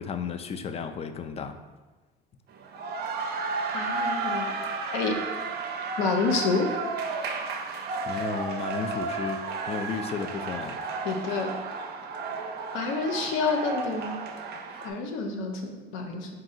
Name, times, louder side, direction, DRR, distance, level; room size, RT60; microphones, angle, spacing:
voice 1, 0.0-1.6 8.1-10.8, left 6 dB, 30° left, 9 dB, 0.3 m, -33 dB
sound 1, 2.5-14.9, right 4 dB, 55° right, 0.5 m, -33 dB
voice 2, 3.7-4.5 4.9-5.1 6.0-6.7 11.0-11.5 12.7-14.2 14.8-16.3, left 4 dB, 80° left, 3 dB, 0.7 m, -28 dB
3.6 x 2.7 x 4.1 m, 1.2 s
supercardioid pair, 95°, 20 cm